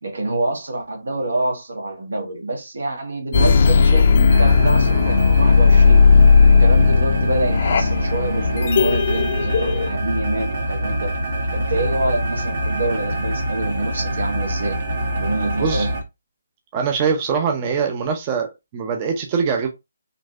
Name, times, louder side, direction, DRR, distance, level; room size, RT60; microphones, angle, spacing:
voice 1, 0.0-6.0 6.4-11.1 11.5-14.7 15.2-15.9, right 2 dB, 80° right, 1.4 m, -26 dB
sound 1, 3.3-9.9, left 5 dB, 50° left, 0.5 m, -15 dB
sound 2, 4.3-16.0, right 1 dB, 55° right, 1.1 m, -25 dB
voice 2, 16.7-19.7, right 6 dB, 25° right, 0.5 m, -22 dB
3.9 x 2.6 x 2.4 m
hypercardioid pair, 155°, 0 cm